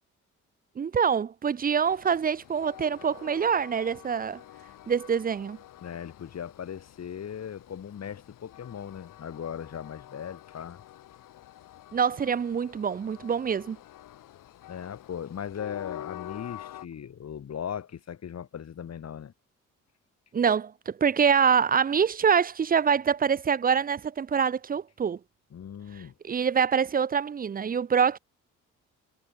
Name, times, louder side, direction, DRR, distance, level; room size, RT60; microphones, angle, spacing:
voice 1, 0.8-4.4 4.9-5.6 11.9-13.8 20.3-25.2 26.2-28.2, right 7 dB, 30° right, 0.5 m, -25 dB
Train, 1.8-16.9, left 13 dB, 75° left, 7.2 m, -48 dB
voice 2, 5.8-10.8 14.7-19.3 25.5-26.1, left 8 dB, 55° left, 2.7 m, -38 dB
supercardioid pair, 65°, 32 cm